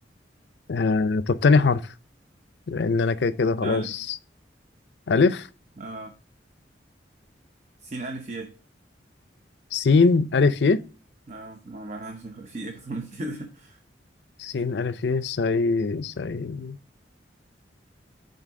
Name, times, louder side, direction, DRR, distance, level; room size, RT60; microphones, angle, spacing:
voice 1, 0.7-1.8 2.7-3.8 5.1-5.5 9.7-10.8 14.4-16.8, left 4 dB, 70° left, 0.5 m, -22 dB
voice 2, 3.6-4.0 5.8-6.1 7.8-8.5 11.3-13.8, right 2 dB, 40° right, 0.8 m, -36 dB
9.1 x 4.0 x 3.6 m
head